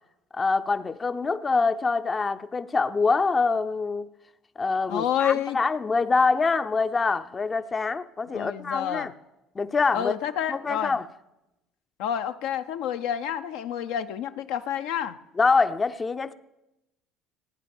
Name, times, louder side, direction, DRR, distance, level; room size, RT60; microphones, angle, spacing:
voice 1, 0.3-4.1 4.6-9.1 9.5-10.1 10.5-11.1 15.4-16.3, left 4 dB, 30° left, 0.6 m, -25 dB
voice 2, 4.9-5.6 8.3-9.1 9.9-11.0 12.0-15.2, left 9 dB, 70° left, 0.7 m, -29 dB
15.0 x 9.5 x 7.1 m
hypercardioid pair, 65°, 0 cm